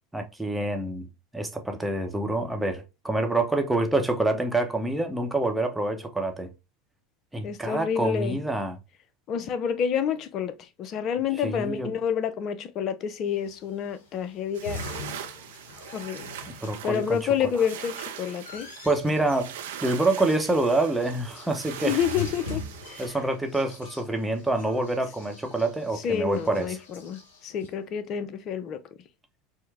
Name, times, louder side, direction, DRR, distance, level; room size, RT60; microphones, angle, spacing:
voice 1, 0.1-1.1 1.3-6.5 7.3-8.8 11.4-11.9 16.6-17.3 18.8-19.5 19.8-22.0 23.0-26.8, right 2 dB, 5° right, 0.9 m, -26 dB
voice 2, 7.4-8.4 9.3-14.9 15.9-16.3 16.8-18.7 21.8-23.1 26.0-28.8, left 8 dB, 45° left, 0.5 m, -29 dB
sound 1, 13.4-27.7, left 4 dB, 75° left, 1.0 m, -43 dB
sound 2, 14.5-23.1, right 9 dB, 70° right, 0.6 m, -41 dB
4.4 x 2.1 x 3.4 m
hypercardioid pair, 80°, 0 cm